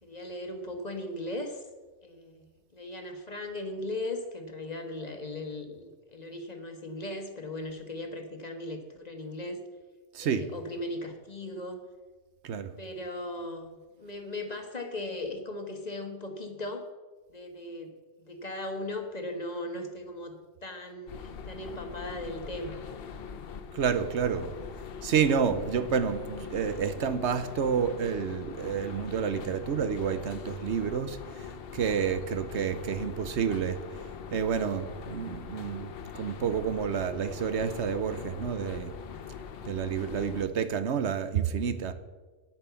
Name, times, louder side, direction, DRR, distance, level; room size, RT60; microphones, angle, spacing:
voice 1, 0.0-1.6 2.0-9.6 10.2-11.8 12.8-16.8 17.3-22.8, left 1 dB, 35° left, 5 dB, 1.3 m, -38 dB
voice 2, 10.1-10.5 12.4-12.7 23.7-24.5 25.0-31.2 31.7-33.8 34.3-38.9 39.7-41.9, right 7 dB, 80° right, 11 dB, 1.1 m, -29 dB
sound 1, 21.1-40.5, left 6 dB, 60° left, 0.9 m, -42 dB
9.7 x 8.7 x 6.9 m, 1.3 s
omnidirectional pair, 1.2 m